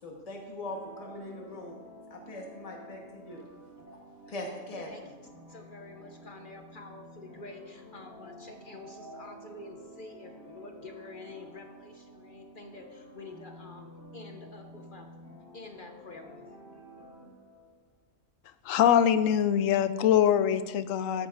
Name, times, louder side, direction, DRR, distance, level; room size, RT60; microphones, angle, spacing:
voice 1, 0.0-1.7 2.1-3.4 3.9-4.0 4.3-4.9, left 1 dB, 30° left, 0 dB, 1.3 m, -41 dB
sound 1, 0.6-17.9, equal, 5° right, 2.5 m, -51 dB
voice 2, 3.9-4.4 4.9-5.1 5.5-15.1 15.5-16.4, left 3 dB, 50° left, 4 dB, 0.8 m, -48 dB
voice 3, 18.6-21.3, left 9 dB, 85° left, 12 dB, 1.0 m, -23 dB
14.0 x 9.5 x 2.5 m, 1.3 s
omnidirectional pair, 1.3 m